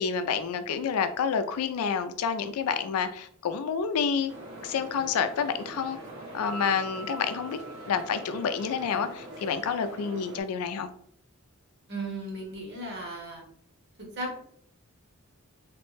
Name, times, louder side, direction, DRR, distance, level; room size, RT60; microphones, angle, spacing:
voice 1, 0.0-4.3 4.6-6.0 6.3-7.6 7.9-10.9, left 6 dB, 90° left, 10 dB, 0.3 m, -29 dB
sound 1, 4.3-10.4, right 1 dB, 85° right, 1.0 m, -43 dB
Piano, 6.4-9.0, right 3 dB, ahead, 0.4 m, -43 dB
voice 2, 11.9-13.4 14.0-14.4, right 1 dB, 50° right, -1 dB, 1.0 m, -36 dB
3.2 x 2.1 x 3.1 m, 0.65 s
head